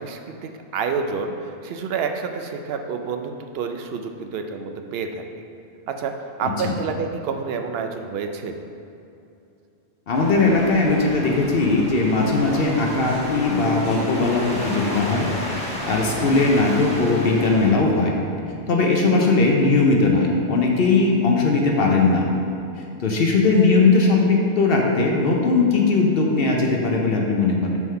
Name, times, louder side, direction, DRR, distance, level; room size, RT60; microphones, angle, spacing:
voice 1, 0.0-1.3 1.6-5.2 5.9-6.1 6.4-8.6, right 5 dB, 65° right, 5 dB, 0.7 m, -28 dB
voice 2, 6.4-6.7 10.1-15.3 15.6-18.1 18.7-22.2 23.0-27.8, left 3 dB, 60° left, 0 dB, 0.9 m, -19 dB
sound 1, 10.1-17.7, equal, 5° left, 1.0 m, -32 dB
sound 2, 12.5-14.5 14.8-16.2, left 1 dB, 20° right, 1.0 m, -37 dB
6.2 x 3.7 x 5.5 m, 2.7 s
omnidirectional pair, 1.2 m